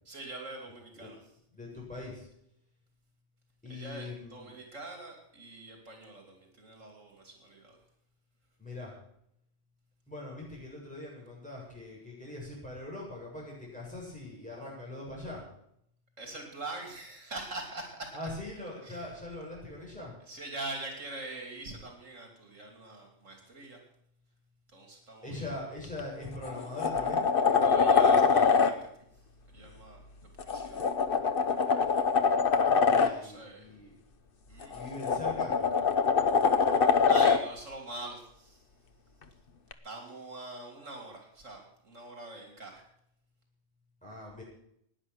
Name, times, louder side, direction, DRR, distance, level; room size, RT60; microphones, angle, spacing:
voice 1, 0.0-1.3 3.7-7.8 16.2-18.2 18.8-19.1 20.2-23.8 24.7-25.7 27.6-28.9 29.5-30.0 30.4-30.8 33.0-33.7 34.5-34.8 37.1-38.6 39.8-42.8, right 2 dB, 80° right, 2 dB, 3.4 m, -43 dB
voice 2, 1.5-2.2 3.6-4.5 8.6-8.9 10.1-15.4 18.1-20.1 25.2-27.3 32.8-33.9 34.7-35.5 44.0-44.4, left 2 dB, 5° left, -4 dB, 7.5 m, -42 dB
sound 1, 25.8-26.0 26.4-28.7 30.4-33.1 34.6-37.4 39.7-39.8, left 5 dB, 50° left, 1.1 m, -24 dB
17.5 x 10.0 x 6.3 m, 0.72 s
omnidirectional pair, 1.3 m